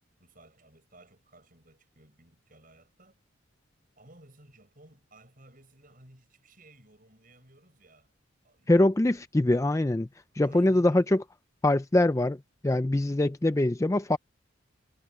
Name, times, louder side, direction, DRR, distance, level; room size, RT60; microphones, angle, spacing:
voice 1, 0.2-3.2 4.0-8.1 8.4-9.1 10.4-11.2, right 1 dB, 40° right, 7.7 m, -57 dB
voice 2, 8.7-10.1 10.3-11.2 11.6-14.2, left 1 dB, 15° left, 0.4 m, -23 dB
head